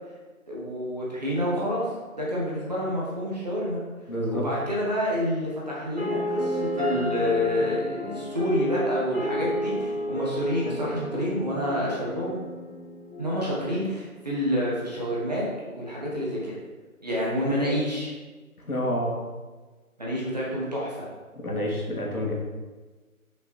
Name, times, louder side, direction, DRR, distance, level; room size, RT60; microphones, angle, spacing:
voice 1, 0.5-1.9 2.2-3.8 4.3-12.4 13.2-16.5 17.0-18.1 20.0-21.1, equal, 30° right, -6 dB, 1.2 m, -28 dB
voice 2, 4.1-4.5 18.6-19.2 21.4-22.3, equal, 80° left, -2 dB, 2.2 m, -28 dB
sound 1, 6.0-14.0, equal, 10° right, 2.3 m, -31 dB
5.7 x 5.7 x 4.5 m, 1.3 s
figure-of-eight pair, 170°, 43 cm